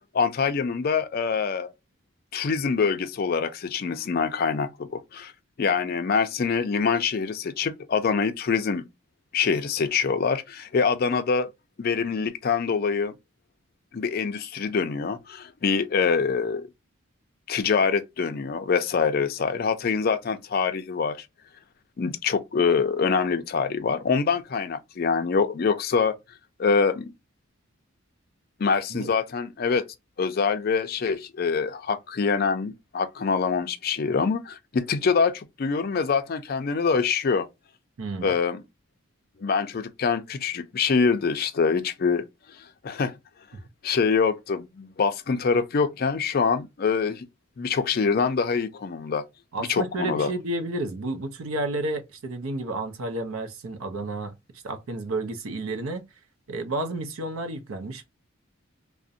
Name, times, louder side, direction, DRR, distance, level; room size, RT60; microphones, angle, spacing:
voice 1, 0.1-1.7 2.3-5.3 5.6-8.8 9.3-11.5 11.8-13.1 13.9-16.7 17.5-21.2 22.0-26.2 26.6-27.1 28.6-29.9 30.2-37.5 38.2-38.6 39.4-42.2 42.8-43.1 43.8-47.3 47.6-49.3 49.7-50.3, left 5 dB, 45° left, 0.4 m, -25 dB
voice 2, 38.0-38.3 49.5-54.3 54.6-56.1 56.5-58.1, right 2 dB, 80° right, 0.6 m, -31 dB
2.5 x 2.1 x 2.6 m
head